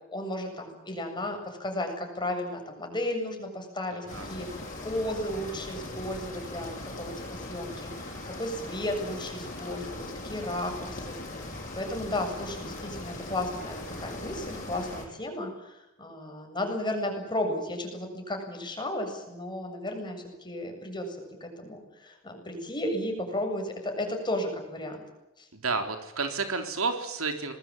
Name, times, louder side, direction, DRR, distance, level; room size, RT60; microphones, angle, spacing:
voice 1, 0.1-11.2 11.7-25.0 25.4-25.5, left 1 dB, 20° left, 3 dB, 7.6 m, -34 dB
voice 2, 3.9-4.3 25.5-27.5, right 4 dB, 70° right, 6 dB, 3.8 m, -31 dB
sound 1, 4.1-15.0, left 2 dB, 35° left, 7.8 m, -39 dB
26.5 x 20.5 x 8.8 m, 0.94 s
head